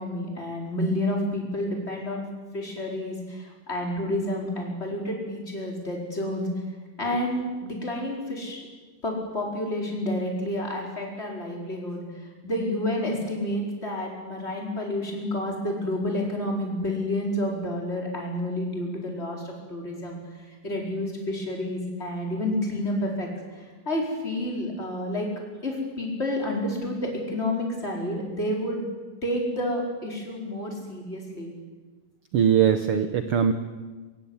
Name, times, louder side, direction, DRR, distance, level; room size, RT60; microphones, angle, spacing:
voice 1, 0.0-2.3 2.5-6.5 7.0-8.7 9.0-25.3 25.6-28.8 29.2-31.5, left 1 dB, 15° left, -1 dB, 4.8 m, -30 dB
voice 2, 32.3-33.5, right 8 dB, 85° right, 9 dB, 1.2 m, -21 dB
23.5 x 16.0 x 9.7 m, 1.3 s
omnidirectional pair, 3.9 m